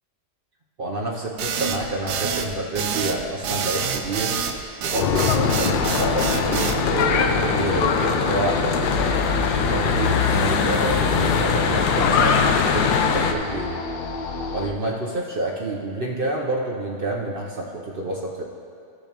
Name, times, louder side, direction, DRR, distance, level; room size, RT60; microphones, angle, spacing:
voice 1, 0.8-4.4 4.8-9.2 9.6-13.8 14.5-18.4, right 2 dB, 50° right, -2 dB, 0.7 m, -28 dB
sound 1, 1.4-6.8, right 6 dB, 80° right, 1.3 m, -27 dB
sound 2, 4.9-14.7, left 3 dB, 60° left, 0.6 m, -30 dB
Church bell / Traffic noise roadway noise, 5.0-13.3, left 6 dB, 75° left, 1.2 m, -21 dB
16.0 x 6.9 x 3.0 m, 2.3 s
omnidirectional pair, 1.8 m